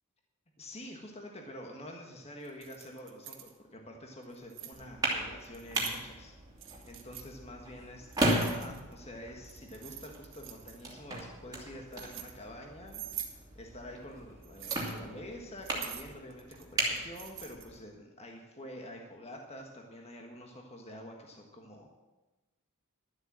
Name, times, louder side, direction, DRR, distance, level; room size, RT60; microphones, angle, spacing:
voice 1, 0.6-6.3 6.8-22.0, left 1 dB, 30° left, 1 dB, 1.5 m, -47 dB
Keys jangling, 2.4-3.5 4.2-4.8 5.4-6.0 6.6-7.3 8.1-9.0 9.4-10.9 11.6-12.3 12.9-13.4 14.4-15.0 15.6-17.8, right 10 dB, 60° right, 1.5 m, -45 dB
sound 1, 4.7-17.8, right 1 dB, 15° right, 2.6 m, -37 dB
12.5 x 8.0 x 7.5 m, 1.1 s
head